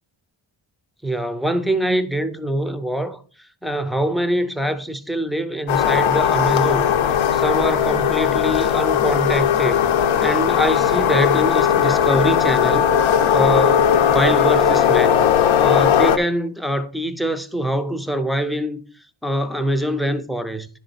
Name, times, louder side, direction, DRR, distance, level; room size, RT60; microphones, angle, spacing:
voice 1, 1.0-3.2 3.6-6.9 7.3-9.8 10.2-12.9 13.3-15.3 15.6-18.8 19.2-20.7, equal, ahead, 0.5 m, -23 dB
sound 1, 5.7-16.2, left 8 dB, 80° left, 0.7 m, -17 dB
10.5 x 4.0 x 4.0 m
wide cardioid pair, 120°, 47 cm